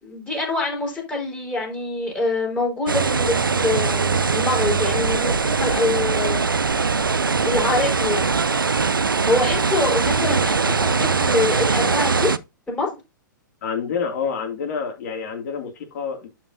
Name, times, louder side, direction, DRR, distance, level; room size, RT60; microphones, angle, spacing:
voice 1, 0.0-6.6 7.4-8.3 9.3-12.3 12.7-13.0, left 3 dB, 10° left, 4.8 m, -25 dB
sound 1, 2.9-12.4, right 4 dB, 90° right, 0.5 m, -21 dB
voice 2, 13.6-16.3, left 6 dB, 50° left, 2.5 m, -28 dB
11.5 x 5.1 x 2.8 m
figure-of-eight pair, 110°, 11 cm